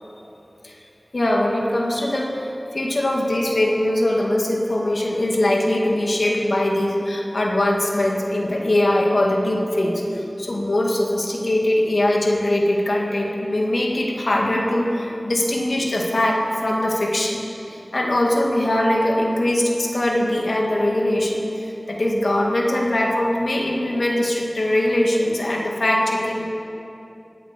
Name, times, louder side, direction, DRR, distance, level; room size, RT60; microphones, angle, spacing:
voice 1, 1.1-17.4 17.7-26.5, left 1 dB, 70° left, 0 dB, 2.0 m, -21 dB
17.0 x 9.0 x 6.8 m, 2.9 s
wide cardioid pair, 45°, 0 cm